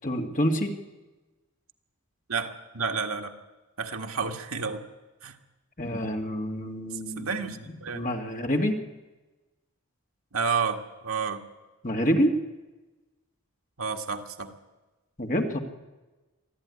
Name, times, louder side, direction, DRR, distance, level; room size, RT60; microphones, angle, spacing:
voice 1, 0.0-0.7 5.8-7.5 7.9-8.8 11.8-12.3 15.2-15.6, equal, 35° left, 3 dB, 2.0 m, -27 dB
voice 2, 2.3-3.3 3.8-4.8 5.2-5.4 6.9-8.1 10.3-11.4 13.8-14.6, right 5 dB, 75° right, 4 dB, 1.7 m, -31 dB
23.5 x 14.5 x 9.7 m, 1.1 s
head